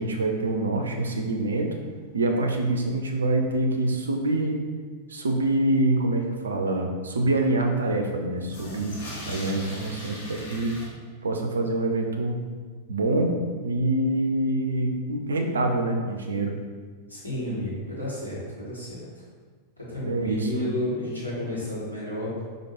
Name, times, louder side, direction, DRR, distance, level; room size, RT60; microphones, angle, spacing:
voice 1, 0.0-1.7 2.1-4.6 5.1-9.0 9.3-10.7 11.2-12.4 12.9-13.4 13.6-16.5 20.0-20.7, right 2 dB, 70° right, 2 dB, 0.4 m, -25 dB
sound 1, 1.4-1.5 1.7-1.8 2.0-2.1 2.7-2.8 8.4-10.9, left 1 dB, 55° left, 0.9 m, -39 dB
voice 2, 17.1-19.1 19.8-22.4, left 1 dB, 85° left, -8 dB, 1.3 m, -32 dB
4.3 x 2.5 x 2.9 m, 1.5 s
figure-of-eight pair, 90°, 0 cm